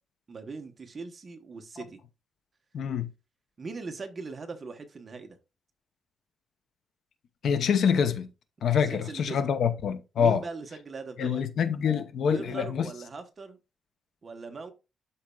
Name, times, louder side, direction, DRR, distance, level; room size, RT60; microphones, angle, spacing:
voice 1, 0.3-2.0 3.6-5.4 8.8-9.5 10.2-11.4 12.3-13.6 14.2-14.7, right 4 dB, 30° right, 1.0 m, -40 dB
voice 2, 2.7-3.1 7.4-8.3 8.6-10.4 11.2-12.8, left 7 dB, 65° left, 0.7 m, -26 dB
12.5 x 4.2 x 2.3 m
wide cardioid pair, 160°, 0 cm